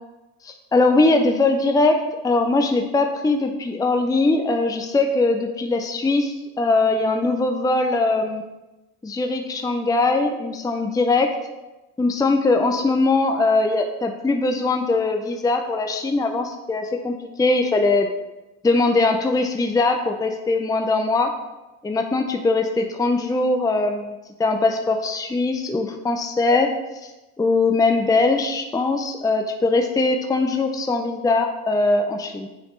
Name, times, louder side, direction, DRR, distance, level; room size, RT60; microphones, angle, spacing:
voice 1, 0.4-8.4 9.0-11.3 12.0-18.1 18.6-21.3 21.8-24.1 24.4-26.7 27.0-27.1 27.4-32.5, left 3 dB, 10° left, 4 dB, 0.6 m, -21 dB
9.1 x 3.4 x 3.9 m, 1.0 s
supercardioid pair, 75°, 35 cm